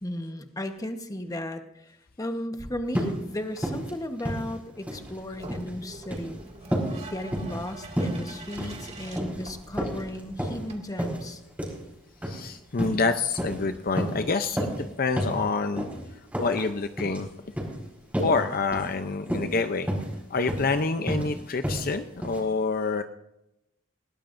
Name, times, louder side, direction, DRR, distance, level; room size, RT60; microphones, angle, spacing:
voice 1, 0.0-6.4 7.1-11.4, left 1 dB, 20° left, 6 dB, 1.1 m, -35 dB
sound 1, 2.9-3.2 3.6-3.9 4.2-5.1 5.4-5.7 6.0-6.3 6.7-6.9 7.3-7.6 8.0-8.2 8.5-8.8 9.1-9.4 9.8-10.6 11.0-11.2 11.6-11.8 12.2-12.4 12.8-13.0 13.3-13.6 14.0-14.2 14.6-14.8 15.2-15.4 15.8-15.9 16.3-16.7 17.0-17.2 17.6-17.7 18.1-18.4 18.7-18.9 19.3-19.6 19.9-20.1 20.5-20.7 21.1-21.3 21.6-21.9 22.2-22.4, equal, 10° right, 4.6 m, -30 dB
sound 2, 4.9-10.8, right 2 dB, 35° right, 2.1 m, -44 dB
voice 2, 12.2-15.9 16.4-17.3 17.6-17.7 18.2-19.9 20.3-23.0, left 4 dB, 45° left, 8 dB, 0.6 m, -27 dB
20.5 x 18.0 x 2.6 m, 0.86 s
head